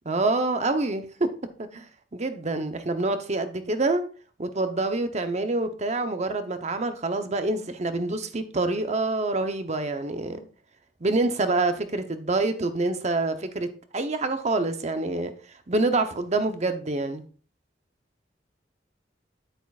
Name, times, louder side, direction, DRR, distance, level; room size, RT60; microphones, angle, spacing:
voice 1, 0.1-1.3 1.6-4.0 4.4-10.5 11.0-13.7 13.9-15.3 15.7-17.2, right 2 dB, 40° right, 0.8 m, -26 dB
9.4 x 8.9 x 2.5 m
head